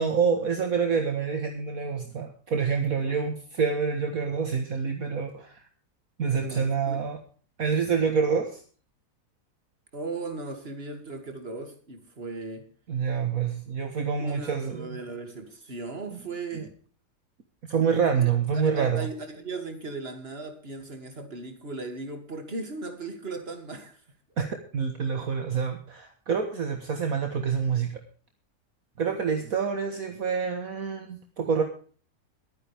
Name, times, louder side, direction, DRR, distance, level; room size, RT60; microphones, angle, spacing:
voice 1, 0.0-5.6 6.2-7.2 7.6-8.6 12.9-15.0 16.1-16.2 16.5-16.6 17.6-19.1 24.4-28.0 29.0-31.6, right 6 dB, 60° right, 5 dB, 1.8 m, -27 dB
voice 2, 6.4-7.0 9.9-12.7 14.2-16.7 18.2-24.0, right 3 dB, 35° right, 6 dB, 2.7 m, -37 dB
22.0 x 9.7 x 3.5 m, 0.42 s
omnidirectional pair, 1.7 m